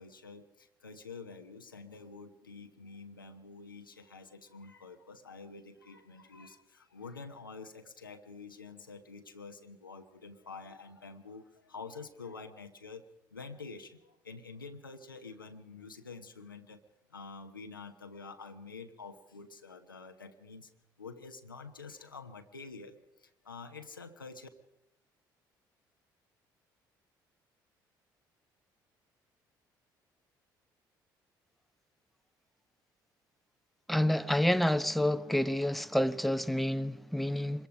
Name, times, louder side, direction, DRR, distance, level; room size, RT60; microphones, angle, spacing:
voice 1, 0.0-13.0 13.3-16.8 17.1-20.7 21.0-24.5, left 4 dB, 90° left, 0.9 m, -48 dB
voice 2, 33.9-37.7, left 1 dB, ahead, 0.9 m, -28 dB
25.0 x 22.0 x 5.1 m
figure-of-eight pair, 50°, 11 cm